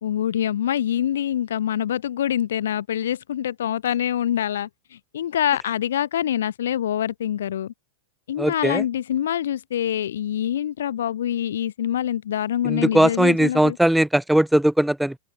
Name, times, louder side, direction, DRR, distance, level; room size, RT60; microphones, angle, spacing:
voice 1, 0.0-7.7 8.3-13.8, left 10 dB, 70° left, 4.4 m, -25 dB
voice 2, 8.4-8.8 12.6-15.2, right 1 dB, 5° right, 1.4 m, -19 dB
open air
hypercardioid pair, 100°, 0 cm